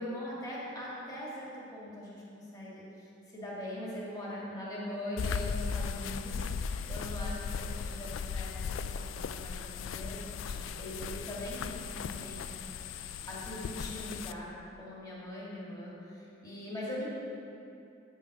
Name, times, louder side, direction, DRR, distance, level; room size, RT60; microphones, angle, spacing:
voice 1, 0.0-12.6 13.3-17.1, left 1 dB, 20° left, -6 dB, 1.8 m, -41 dB
sound 1, 5.2-14.3, left 6 dB, 80° left, 0.3 m, -37 dB
8.6 x 5.5 x 5.3 m, 2.7 s
head